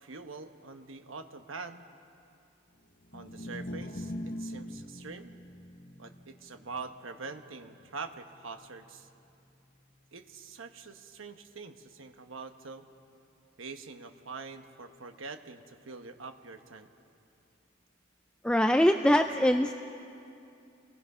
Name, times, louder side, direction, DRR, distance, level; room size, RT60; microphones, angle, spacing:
voice 1, 0.0-1.8 3.1-5.3 6.0-9.1 10.1-12.8 13.6-16.9, right 4 dB, 80° right, 7 dB, 1.2 m, -44 dB
sound 1, 3.0-9.4, equal, 45° left, 1.0 m, -43 dB
voice 2, 18.4-19.7, equal, 5° left, 6 dB, 0.4 m, -23 dB
29.5 x 20.0 x 5.5 m, 2.7 s
head